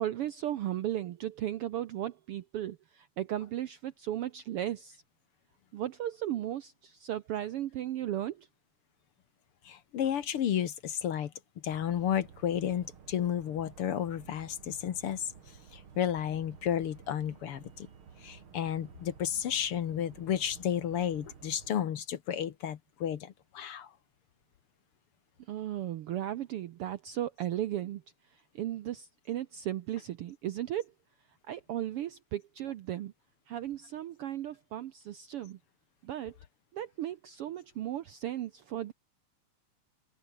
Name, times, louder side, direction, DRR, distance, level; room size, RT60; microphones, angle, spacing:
voice 1, 0.0-5.0 5.7-8.5 25.4-28.0 28.3-30.9 31.5-33.1 33.5-35.6 36.0-36.4 36.7-38.9, right 12 dB, 70° right, 1.4 m, -36 dB
voice 2, 9.7-11.3 11.6-15.3 15.7-17.9 18.2-23.9, left 9 dB, 55° left, 1.8 m, -32 dB
sound 1, 11.6-21.7, right 6 dB, 45° right, 2.9 m, -53 dB
omnidirectional pair, 3.4 m